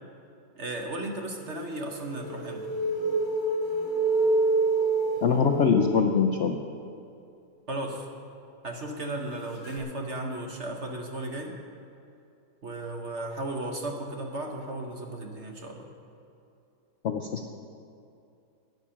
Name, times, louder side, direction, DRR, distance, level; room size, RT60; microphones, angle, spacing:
voice 1, 0.6-2.7 7.7-8.1 8.6-11.5 12.6-15.9, right 1 dB, 45° right, 2 dB, 1.1 m, -35 dB
sound 1, 1.7-6.4 9.6-9.8, right 3 dB, 40° left, 2.1 m, -27 dB
voice 2, 5.2-6.6 17.0-17.5, left 6 dB, 85° left, 5 dB, 0.6 m, -23 dB
13.5 x 9.4 x 5.7 m, 2.6 s
omnidirectional pair, 1.9 m